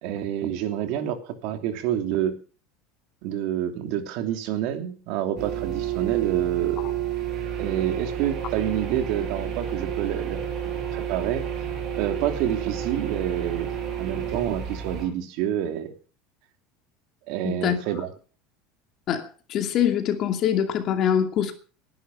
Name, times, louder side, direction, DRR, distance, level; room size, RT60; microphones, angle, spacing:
voice 1, 0.0-2.4 3.2-7.0 7.6-11.6 12.0-13.7 14.0-15.9 17.3-18.1, right 10 dB, 65° right, 6 dB, 2.9 m, -28 dB
sound 1, 5.4-15.1, right 9 dB, 40° right, 7.3 m, -30 dB
voice 2, 17.4-17.8 19.1-21.5, left 9 dB, 40° left, 6 dB, 2.5 m, -24 dB
19.0 x 11.0 x 5.5 m, 0.39 s
supercardioid pair, 140°, 0 cm